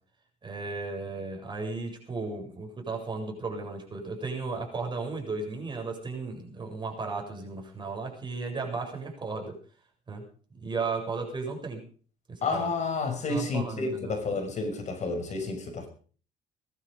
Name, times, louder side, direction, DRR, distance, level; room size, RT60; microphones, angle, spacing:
voice 1, 0.4-9.6 10.1-10.2 10.5-11.8 12.3-12.7 13.3-14.1, right 4 dB, 25° right, 1 dB, 7.6 m, -35 dB
voice 2, 12.4-15.9, left 3 dB, 45° left, 5 dB, 5.9 m, -30 dB
21.0 x 12.5 x 5.3 m, 0.43 s
cardioid pair, 110°, 17 cm